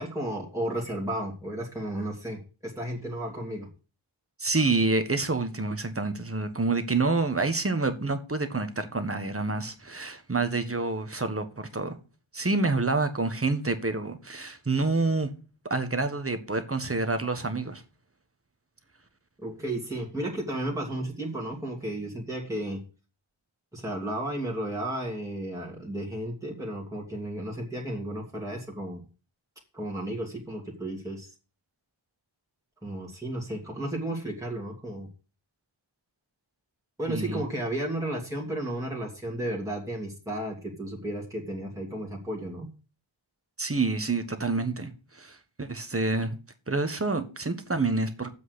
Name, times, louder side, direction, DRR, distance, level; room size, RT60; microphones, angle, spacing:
voice 1, 0.0-3.7 19.4-22.8 23.7-29.0 29.7-31.3 32.8-35.1 37.0-42.7, right 1 dB, 5° right, 2.7 m, -33 dB
voice 2, 4.4-12.0 12.3-15.3 15.7-17.8 37.1-37.4 43.6-46.4 46.7-48.3, right 3 dB, 25° right, 1.5 m, -28 dB
7.7 x 6.3 x 8.0 m
wide cardioid pair, 65°, 49 cm